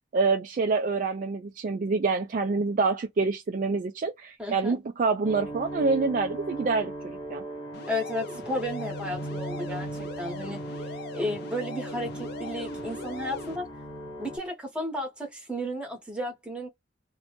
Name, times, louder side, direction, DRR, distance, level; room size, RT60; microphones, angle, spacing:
voice 1, 0.1-7.4, right 4 dB, 40° right, 0.3 m, -26 dB
voice 2, 4.4-4.8 7.9-10.6 11.1-13.7 14.2-16.7, left 1 dB, 5° right, 1.0 m, -33 dB
sound 1, 5.2-14.4, right 1 dB, 25° left, 0.9 m, -37 dB
sound 2, 7.7-13.6, left 4 dB, 55° left, 0.5 m, -42 dB
2.6 x 2.2 x 2.9 m
head